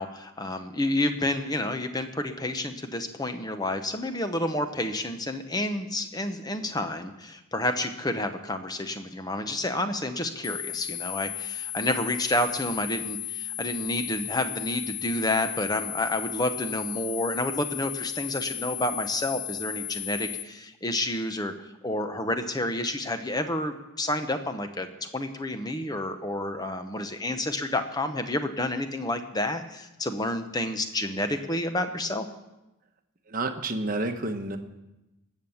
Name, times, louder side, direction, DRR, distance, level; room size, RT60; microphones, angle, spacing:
voice 1, 0.0-21.5 21.8-32.3, left 1 dB, 15° left, 8 dB, 0.9 m, -29 dB
sound 1, 10.4-20.4, left 11 dB, 65° left, 0.8 m, -35 dB
voice 2, 33.3-34.6, right 2 dB, 40° right, 6 dB, 1.1 m, -29 dB
18.5 x 7.3 x 7.1 m, 0.98 s
head